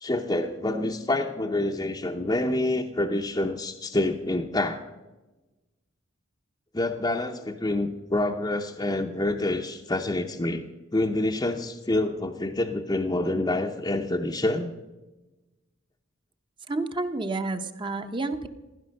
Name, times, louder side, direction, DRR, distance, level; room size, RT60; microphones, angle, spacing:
voice 1, 0.0-4.8 6.7-10.6 10.9-14.7, left 2 dB, 20° left, 2 dB, 0.7 m, -27 dB
voice 2, 16.7-18.5, right 2 dB, 25° right, 8 dB, 0.8 m, -30 dB
16.0 x 11.0 x 6.5 m, 1.1 s
head